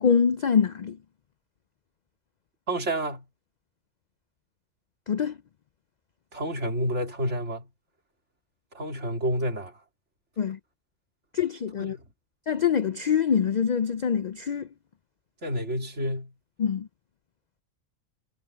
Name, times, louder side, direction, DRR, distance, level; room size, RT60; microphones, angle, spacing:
voice 1, 0.0-1.0 5.1-5.3 10.4-10.6 11.3-12.0 12.5-14.7 16.6-16.9, left 7 dB, 70° left, 0.4 m, -24 dB
voice 2, 2.7-3.2 6.3-7.7 8.7-9.8 11.8-12.1 15.4-16.3, equal, 60° right, 3.5 m, -29 dB
omnidirectional pair, 1.3 m